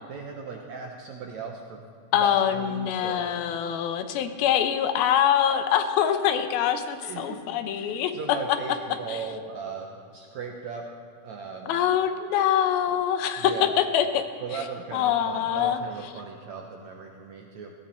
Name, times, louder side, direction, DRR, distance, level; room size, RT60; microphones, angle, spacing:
voice 1, 0.1-1.8 2.2-3.6 7.0-7.4 7.7-10.8 11.2-11.7 13.4-13.7 14.4-17.7, right 5 dB, 70° right, 1 dB, 1.8 m, -38 dB
voice 2, 2.1-8.1 9.1-9.2 11.7-14.2 14.9-15.8, left 9 dB, 80° left, 8 dB, 2.6 m, -24 dB
19.5 x 15.5 x 4.4 m, 2.2 s
omnidirectional pair, 4.5 m